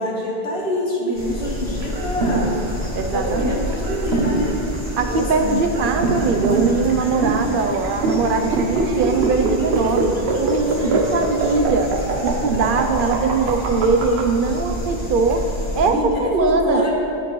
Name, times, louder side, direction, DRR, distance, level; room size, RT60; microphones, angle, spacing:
voice 1, 0.0-2.5 3.1-4.6 5.1-5.7 10.7-11.0 15.9-16.9, left 1 dB, 75° left, -2 dB, 1.6 m, -25 dB
sound 1, 1.1-15.9, equal, 15° left, 1.9 m, -30 dB
sound 2, 1.8-14.2, right 3 dB, 85° right, 1.1 m, -24 dB
voice 2, 2.9-3.6 5.0-11.9 12.2-15.4 15.7-16.9, right 4 dB, 60° right, 6 dB, 0.7 m, -21 dB
11.0 x 7.8 x 3.1 m, 2.9 s
omnidirectional pair, 1.1 m